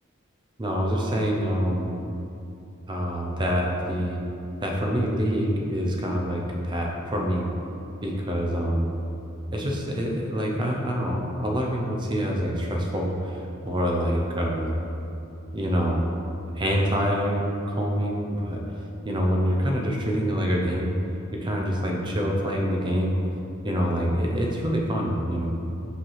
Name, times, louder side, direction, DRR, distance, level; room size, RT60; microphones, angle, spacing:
voice 1, 0.6-2.0 2.9-4.2 4.6-7.5 8.0-8.9 9.5-13.4 13.6-14.8 15.5-16.1 16.6-18.6 19.0-21.0 21.3-23.2 23.6-25.5, equal, 20° right, 0 dB, 0.6 m, -26 dB
5.1 x 3.3 x 5.6 m, 2.7 s
head